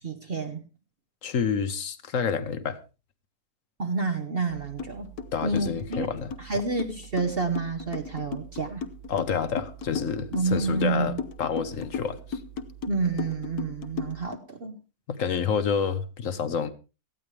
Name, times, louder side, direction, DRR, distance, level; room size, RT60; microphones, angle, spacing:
voice 1, 0.0-0.7 3.8-5.1 5.4-6.1 6.4-8.8 10.3-11.2 12.9-14.8, right 3 dB, 40° right, 1.1 m, -29 dB
voice 2, 1.2-2.8 5.3-6.3 9.1-12.4 15.1-16.7, left 6 dB, 55° left, 1.4 m, -28 dB
sound 1, 4.5-14.3, right 12 dB, 85° right, 2.6 m, -48 dB
sound 2, 4.8-4.9 5.2-14.4, left 6 dB, 75° left, 1.5 m, -35 dB
18.0 x 14.0 x 3.3 m
omnidirectional pair, 1.7 m